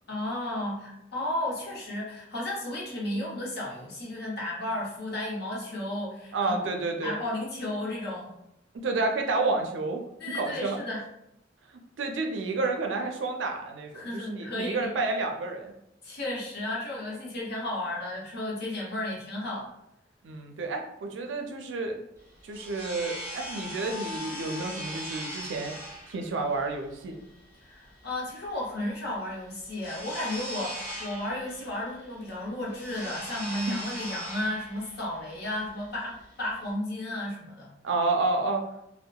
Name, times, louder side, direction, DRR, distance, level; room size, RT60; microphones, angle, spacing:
voice 1, 0.1-6.6 7.0-8.3 10.2-11.0 13.9-14.9 16.0-19.7 27.6-37.7, left 1 dB, 60° left, -3 dB, 0.8 m, -33 dB
voice 2, 6.3-7.2 8.7-10.8 12.0-15.7 20.2-22.0 22.4-25.8 26.1-27.1 37.8-38.6, right 3 dB, 75° right, 4 dB, 0.4 m, -30 dB
sound 1, 22.2-36.7, equal, 15° left, 1.3 m, -40 dB
2.7 x 2.1 x 2.2 m, 0.82 s
head